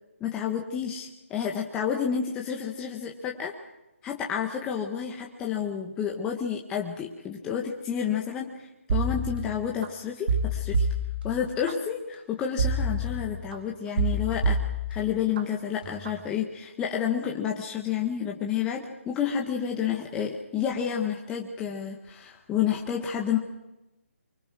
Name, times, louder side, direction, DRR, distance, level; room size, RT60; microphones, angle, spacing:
voice 1, 0.2-3.6 4.0-10.9 11.2-14.6 14.9-23.4, left 8 dB, 10° left, 0 dB, 1.4 m, -30 dB
sound 1, 8.9-9.9 10.3-11.7 12.6-13.6 14.0-15.4 15.8-16.2, right 1 dB, 45° right, 2.4 m, -27 dB
24.5 x 23.0 x 6.2 m, 0.95 s
hypercardioid pair, 160°, 7 cm